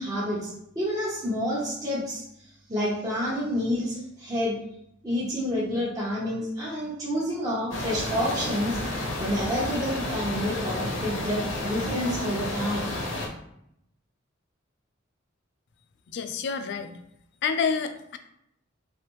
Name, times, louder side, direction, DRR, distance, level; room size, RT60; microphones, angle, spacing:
voice 1, 0.0-2.2 2.7-4.6 5.0-8.8 9.2-12.9, equal, 20° right, -8 dB, 0.9 m, -29 dB
sound 1, 7.7-13.3, left 1 dB, 80° left, 0.9 m, -31 dB
voice 2, 16.1-17.0 17.4-18.2, left 6 dB, 60° left, 8 dB, 0.4 m, -28 dB
3.5 x 3.3 x 3.0 m, 0.77 s
head